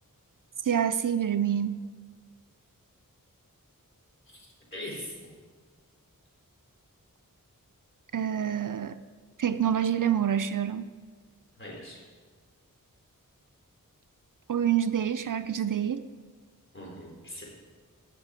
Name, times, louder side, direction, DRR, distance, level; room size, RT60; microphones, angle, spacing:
voice 1, 0.6-1.8 8.1-9.0 9.4-10.9 14.5-16.1, right 9 dB, 65° right, 12 dB, 0.5 m, -27 dB
voice 2, 4.3-5.3 11.6-12.0 16.7-17.4, left 1 dB, 35° left, -3 dB, 3.8 m, -41 dB
17.5 x 5.9 x 4.9 m, 1.5 s
wide cardioid pair, 60°, 34 cm